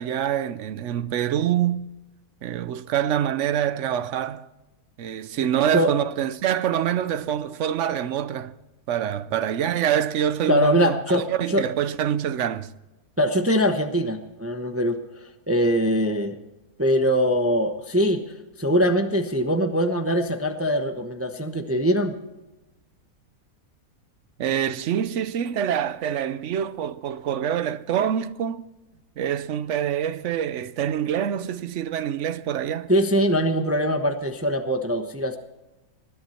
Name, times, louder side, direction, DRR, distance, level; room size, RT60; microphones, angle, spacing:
voice 1, 0.0-1.9 2.4-4.5 5.0-8.5 8.9-12.7 24.4-28.6 29.2-32.9, right 10 dB, 60° right, 0.9 m, -25 dB
voice 2, 10.5-11.6 13.2-15.0 15.5-16.4 16.8-18.2 18.6-22.1 32.9-35.4, equal, 10° right, 0.7 m, -22 dB
20.0 x 11.5 x 4.3 m
omnidirectional pair, 1.6 m